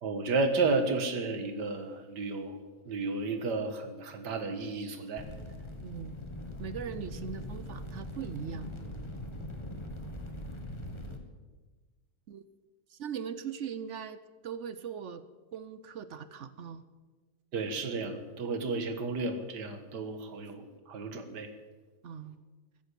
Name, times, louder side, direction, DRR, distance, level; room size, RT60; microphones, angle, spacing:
voice 1, 0.0-2.6 2.9-5.2 17.5-21.5, right 3 dB, 80° right, 8 dB, 2.1 m, -32 dB
sound 1, 5.2-11.2, left 1 dB, 20° left, 1.5 m, -41 dB
voice 2, 5.8-6.2 6.6-8.7 12.3-12.4 12.9-15.2 15.5-16.8 22.0-22.4, right 7 dB, 60° right, 13 dB, 0.8 m, -40 dB
15.0 x 10.5 x 8.3 m, 1.3 s
omnidirectional pair, 1.8 m